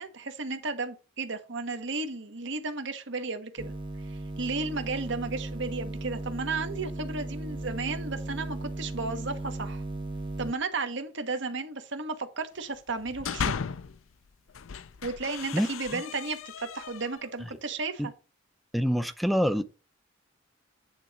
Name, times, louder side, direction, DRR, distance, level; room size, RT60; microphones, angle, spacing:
voice 1, 0.0-3.7 4.1-9.8 10.4-13.5 15.0-18.1, right 3 dB, 65° right, 1.2 m, -34 dB
sound 1, 3.6-10.5, right 2 dB, 25° right, 0.8 m, -36 dB
sound 2, 12.9-14.0 14.5-17.3, left 6 dB, 85° left, 0.5 m, -36 dB
voice 2, 15.5-16.0 17.4-17.5 18.0-18.1 18.7-19.6, equal, ahead, 0.5 m, -27 dB
9.4 x 4.1 x 4.8 m
head